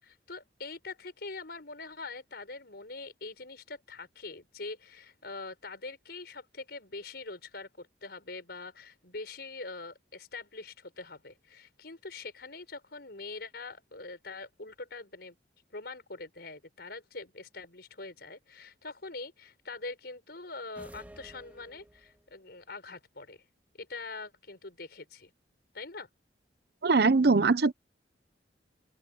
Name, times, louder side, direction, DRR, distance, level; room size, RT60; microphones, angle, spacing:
voice 1, 0.0-15.4 15.7-23.4 23.8-25.3 25.7-26.1, left 3 dB, 65° left, 5.8 m, -43 dB
sound 1, 20.7-22.3, right 1 dB, 10° right, 2.0 m, -51 dB
voice 2, 26.8-27.7, right 3 dB, 65° right, 0.8 m, -22 dB
open air
head